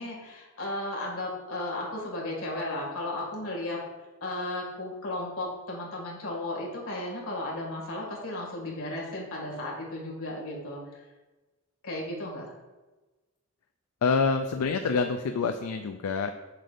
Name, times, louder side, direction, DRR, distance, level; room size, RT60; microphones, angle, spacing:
voice 1, 0.0-3.8 4.2-11.1 11.8-12.5, left 1 dB, 65° left, -2 dB, 2.2 m, -35 dB
voice 2, 14.0-16.3, left 4 dB, 85° left, 6 dB, 0.4 m, -26 dB
7.4 x 6.8 x 2.6 m, 1.2 s
head